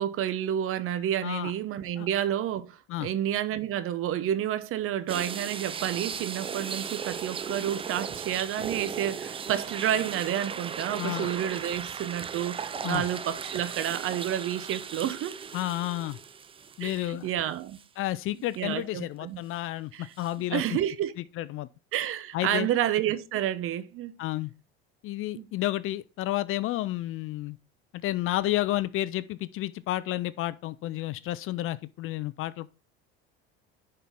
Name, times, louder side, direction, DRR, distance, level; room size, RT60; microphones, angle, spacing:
voice 1, 0.0-15.3 16.8-17.8 18.6-19.4 19.9-20.1 20.5-21.1 21.9-24.1 25.3-25.4, right 11 dB, 45° right, 0.8 m, -30 dB
sound 1, 5.1-17.3 17.7-17.8 20.2-20.3, right 6 dB, 20° right, 0.4 m, -37 dB
voice 2, 11.0-11.3 12.8-13.0 15.5-16.2 16.8-17.3 18.0-20.8 21.2-21.7 22.3-22.7 24.2-24.5 25.0-27.6 27.9-32.7, left 15 dB, 45° left, 0.5 m, -31 dB
10.0 x 4.4 x 3.6 m
supercardioid pair, 95°, 29 cm